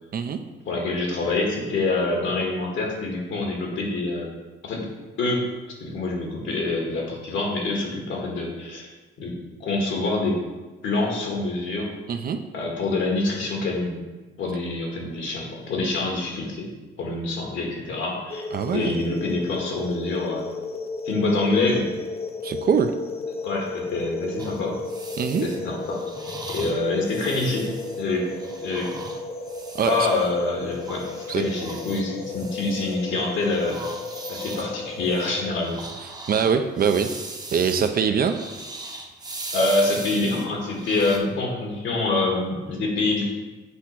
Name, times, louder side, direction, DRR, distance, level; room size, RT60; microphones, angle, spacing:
voice 1, 0.7-4.3 4.6-4.9 5.2-5.5 5.8-8.9 9.2-10.4 10.8-11.9 12.5-14.0 14.4-16.7 17.0-18.4 18.7-20.5 21.1-21.9 23.4-24.8 25.4-26.0 26.5-27.7 28.0-28.3 28.6-28.9 29.8-31.1 31.4-33.8 34.3-35.9 39.5-43.3, left 2 dB, 75° left, -1 dB, 1.8 m, -26 dB
voice 2, 12.1-12.4 18.5-19.0 22.4-22.9 25.2-25.5 29.7-30.1 31.3-31.4 36.3-37.1 37.5-38.3, right 6 dB, 50° right, 7 dB, 0.6 m, -23 dB
sound 1, 18.3-35.5, left 3 dB, 30° left, 0.6 m, -34 dB
sound 2, 24.4-30.3 30.7-33.1 33.4-41.2, right 2 dB, 20° right, 0.8 m, -39 dB
8.0 x 3.0 x 5.9 m, 1.2 s
cardioid pair, 90°, 20 cm